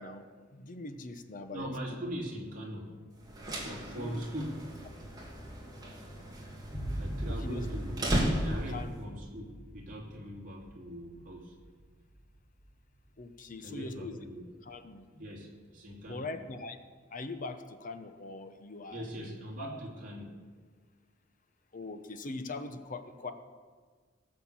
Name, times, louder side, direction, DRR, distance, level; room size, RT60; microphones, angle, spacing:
voice 1, 0.0-2.0 4.0-4.2 7.3-7.6 8.7-8.9 13.2-14.2 14.7-15.1 16.0-16.8 17.1-19.8 21.7-23.3, left 2 dB, 45° left, 9 dB, 0.9 m, -42 dB
voice 2, 1.5-3.0 3.6-4.6 7.0-11.5 13.6-14.4 15.1-16.3 18.9-20.3, equal, 45° right, -1 dB, 2.8 m, -41 dB
sound 1, 3.2-8.9, right 1 dB, 20° right, 2.5 m, -35 dB
sound 2, 6.7-14.1, equal, 5° left, 1.9 m, -42 dB
17.5 x 6.8 x 7.4 m, 1.5 s
head